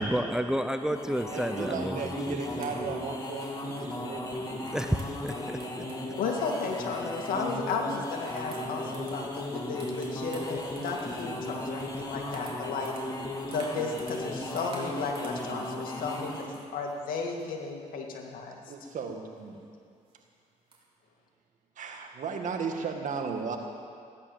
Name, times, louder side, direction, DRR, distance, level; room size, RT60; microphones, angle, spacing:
voice 1, 0.0-2.6 4.7-5.8, equal, 5° right, 8 dB, 0.7 m, -31 dB
sound 1, 0.8-16.6, left 1 dB, 25° left, 2.6 m, -36 dB
voice 2, 1.3-4.6 18.7-19.6 21.8-23.6, right 5 dB, 60° right, 3 dB, 2.1 m, -35 dB
sound 2, 2.6-7.1 7.5-7.8 8.4-9.5 9.8-14.3 14.6-15.5 16.1-17.7 18.8-18.9 19.5-19.6 20.1-20.2 20.7-20.8, right 3 dB, 40° right, 3.7 m, -51 dB
voice 3, 6.2-12.9 13.5-18.6, left 4 dB, 75° left, 1 dB, 2.5 m, -34 dB
16.0 x 11.0 x 7.4 m, 2.3 s
cardioid pair, 80°, 14 cm